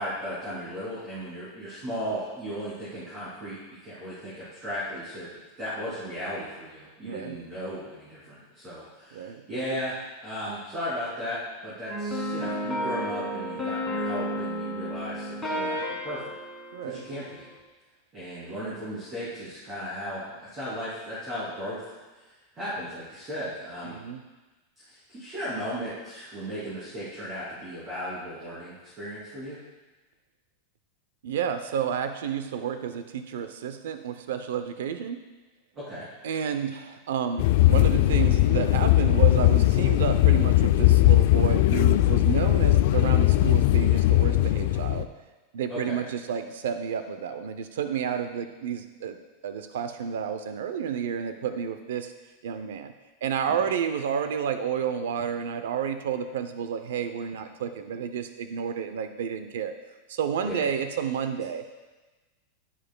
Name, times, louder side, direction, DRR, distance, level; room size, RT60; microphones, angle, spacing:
voice 1, 0.0-5.3 5.6-15.8 16.0-16.3 16.8-17.5 18.1-21.8 22.5-23.9 24.9-29.6 35.7-36.1 45.7-46.0 60.4-60.6, equal, 20° right, -11 dB, 2.7 m, -36 dB
voice 2, 7.0-7.4 9.1-9.4 15.8-15.9 16.7-17.0 23.8-24.2 31.2-35.2 36.2-45.1 45.5-49.2 49.4-52.1 52.4-52.9 53.2-59.7 60.1-61.6, right 8 dB, 85° right, 9 dB, 0.5 m, -30 dB
sound 1, 11.9-17.5, equal, 5° left, 1.7 m, -32 dB
sound 2, 37.4-45.1, left 15 dB, 55° left, 0.3 m, -20 dB
10.0 x 9.9 x 2.2 m, 1.2 s
supercardioid pair, 160°, 0 cm